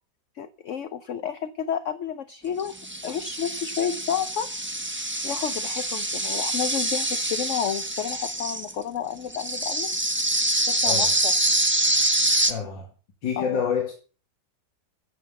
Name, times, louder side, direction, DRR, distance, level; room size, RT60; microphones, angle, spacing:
voice 1, 0.4-2.7 3.0-4.5 5.2-9.9 10.7-11.3 13.4-13.6, left 8 dB, 55° left, 0.9 m, -31 dB
sound 1, 2.6-8.7 9.3-12.5, right 1 dB, 10° right, 0.9 m, -25 dB
voice 2, 10.8-11.1 12.5-12.9 13.2-13.9, left 7 dB, 80° left, 2.8 m, -27 dB
15.0 x 5.7 x 8.1 m
omnidirectional pair, 2.0 m